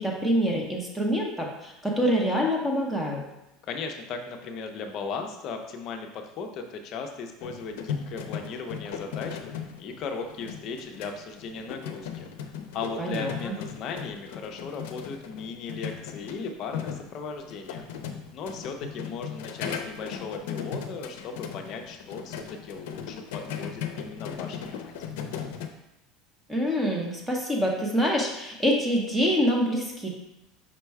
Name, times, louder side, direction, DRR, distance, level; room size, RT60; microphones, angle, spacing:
voice 1, 0.0-3.2 13.0-13.5 26.5-30.1, equal, 5° right, -1 dB, 0.8 m, -26 dB
voice 2, 3.6-17.9 18.3-25.1, left 4 dB, 40° left, 4 dB, 0.5 m, -37 dB
sound 1, 7.4-25.7, left 7 dB, 90° left, 0.5 m, -37 dB
5.2 x 2.2 x 4.6 m, 0.91 s
cardioid pair, 155°, 0 cm